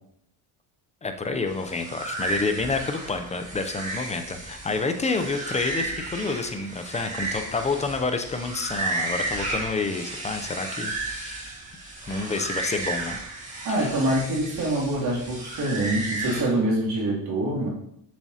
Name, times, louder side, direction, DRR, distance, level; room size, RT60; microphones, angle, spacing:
voice 1, 1.0-11.5 12.1-13.2 13.8-13.9, left 3 dB, 15° left, 6 dB, 0.4 m, -29 dB
sound 1, 1.5-16.4, right 2 dB, 15° right, 1.7 m, -33 dB
voice 2, 13.6-17.7, right 1 dB, 50° right, -5 dB, 2.7 m, -25 dB
7.3 x 6.0 x 2.8 m, 0.77 s
cardioid pair, 125°, 49 cm